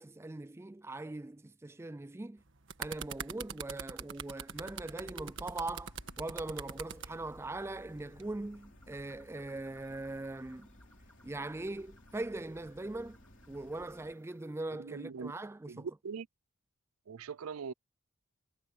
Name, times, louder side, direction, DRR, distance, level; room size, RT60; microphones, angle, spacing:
voice 1, 0.0-2.4 2.8-10.7 11.2-13.2 13.5-15.9, right 2 dB, 10° right, 0.4 m, -41 dB
sound 1, 2.4-7.1 8.0-8.2, right 6 dB, 60° right, 1.6 m, -42 dB
sound 2, 4.5-14.1, left 1 dB, 60° left, 3.7 m, -58 dB
sound 3, 6.4-14.6, equal, 5° left, 4.4 m, -65 dB
voice 2, 14.7-15.3 15.7-16.3 17.1-17.7, right 5 dB, 85° right, 0.5 m, -41 dB
head